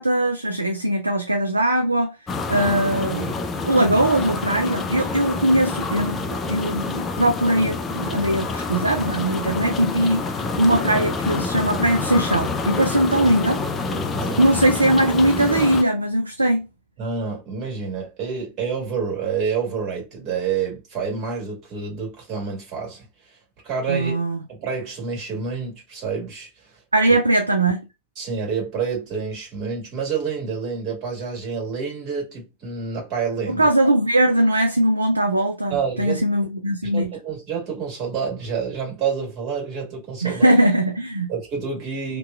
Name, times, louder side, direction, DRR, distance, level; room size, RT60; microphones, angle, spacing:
voice 1, 0.0-2.1 2.5-3.4 3.6-13.6 14.4-16.7 23.9-24.4 26.9-27.8 33.5-37.1 40.2-41.3, right 1 dB, 80° right, 0.3 m, -20 dB
sound 1, 2.3-15.8, left 4 dB, 20° left, 0.4 m, -27 dB
voice 2, 3.1-3.4 13.9-14.6 17.0-23.4 23.6-24.2 24.5-26.7 28.1-33.7 35.7-36.2 36.9-40.5 41.3-42.2, right 6 dB, 35° right, 1.6 m, -28 dB
2.8 x 2.2 x 2.3 m
figure-of-eight pair, 90°, 0 cm